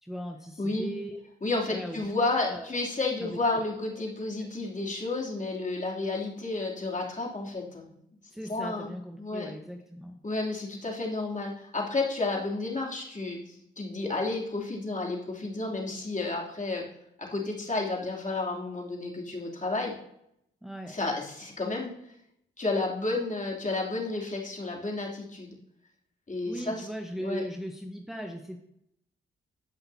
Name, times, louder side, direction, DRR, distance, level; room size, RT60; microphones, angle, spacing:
voice 1, 0.0-1.2 1.7-2.1 2.4-2.8 3.2-3.6 4.4-4.5 8.3-10.2 20.6-21.0 26.5-28.6, equal, ahead, 3 dB, 1.1 m, -38 dB
voice 2, 0.6-0.9 1.4-7.9 8.5-8.9 9.2-9.5 10.2-16.8 17.2-19.9 20.9-21.9 22.6-25.5 26.3-26.9 27.2-27.4, left 2 dB, 35° left, -2 dB, 3.0 m, -31 dB
15.5 x 5.8 x 2.8 m, 0.77 s
supercardioid pair, 45°, 21 cm